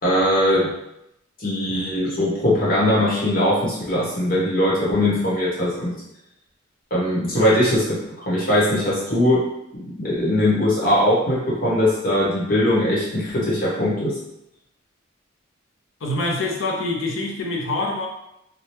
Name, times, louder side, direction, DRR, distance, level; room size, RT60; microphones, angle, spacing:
voice 1, 0.0-0.7 1.4-5.9 6.9-9.4 9.7-14.2, left 1 dB, 45° left, -7 dB, 1.1 m, -20 dB
voice 2, 16.0-18.1, left 2 dB, 85° left, 1 dB, 0.6 m, -25 dB
2.9 x 2.2 x 3.1 m, 0.82 s
head